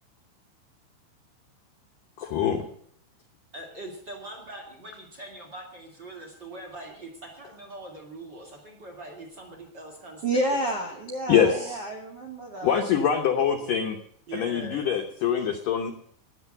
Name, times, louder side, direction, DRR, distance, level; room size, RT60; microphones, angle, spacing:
voice 1, 2.2-2.7 11.3-11.8 12.6-14.0 14.3-15.9, left 8 dB, 85° left, 4 dB, 1.9 m, -24 dB
voice 2, 3.5-10.6 11.3-11.7 13.1-13.2 14.3-15.0, right 1 dB, 30° right, 5 dB, 2.1 m, -42 dB
voice 3, 10.2-12.8, right 1 dB, 90° right, 4 dB, 1.3 m, -29 dB
13.0 x 10.0 x 7.8 m, 0.65 s
omnidirectional pair, 5.5 m